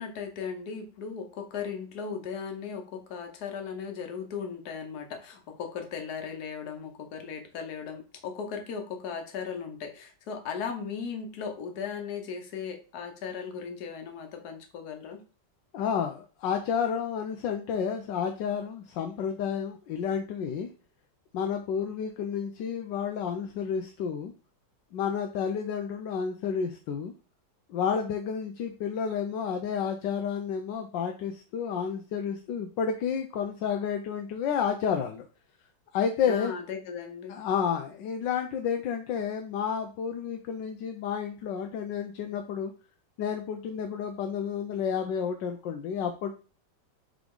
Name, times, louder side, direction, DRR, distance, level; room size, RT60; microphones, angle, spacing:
voice 1, 0.0-15.2 36.3-37.4, left 6 dB, 60° left, 5 dB, 1.5 m, -37 dB
voice 2, 15.7-20.7 21.3-24.3 24.9-27.1 27.7-35.3 35.9-36.5 37.3-42.7 43.2-46.3, left 7 dB, 85° left, 5 dB, 1.4 m, -30 dB
7.0 x 3.7 x 3.8 m, 0.36 s
omnidirectional pair, 1.9 m